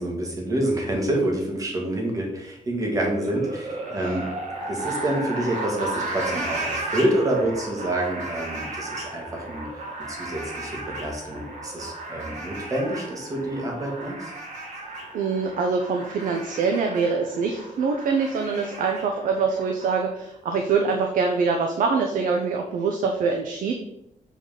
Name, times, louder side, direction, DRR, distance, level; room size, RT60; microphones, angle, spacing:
voice 1, 0.0-4.2 4.7-9.7 10.1-14.2, right 1 dB, 25° right, 0 dB, 1.9 m, -27 dB
sound 1, 2.9-19.9, right 2 dB, 65° right, 2.1 m, -35 dB
voice 2, 15.1-23.7, right 5 dB, 85° right, 4 dB, 0.9 m, -24 dB
7.7 x 4.2 x 5.1 m, 0.79 s
wide cardioid pair, 175°, 13 cm